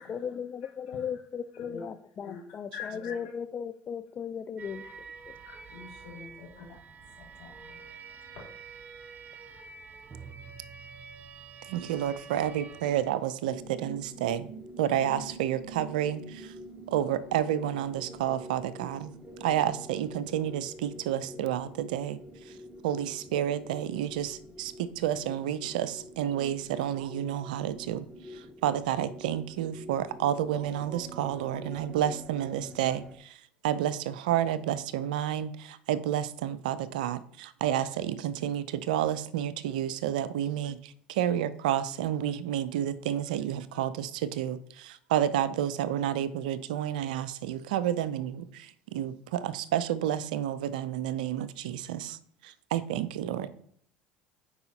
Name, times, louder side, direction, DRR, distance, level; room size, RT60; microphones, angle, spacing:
voice 1, 0.0-5.4, left 7 dB, 40° left, 10 dB, 0.4 m, -37 dB
voice 2, 2.7-3.2 4.8-4.9 5.4-8.5, left 7 dB, 80° left, -4 dB, 2.7 m, -45 dB
sound 1, 4.6-13.1, right 5 dB, 40° right, 0.8 m, -47 dB
voice 3, 11.7-14.5 14.8-16.5 16.9-19.1 19.4-22.2 22.5-22.6 22.8-53.5, right 10 dB, 80° right, 16 dB, 0.5 m, -30 dB
sound 2, 13.4-33.2, right 1 dB, 15° right, 1.0 m, -47 dB
9.5 x 4.7 x 2.8 m, 0.62 s
hypercardioid pair, 70°, 4 cm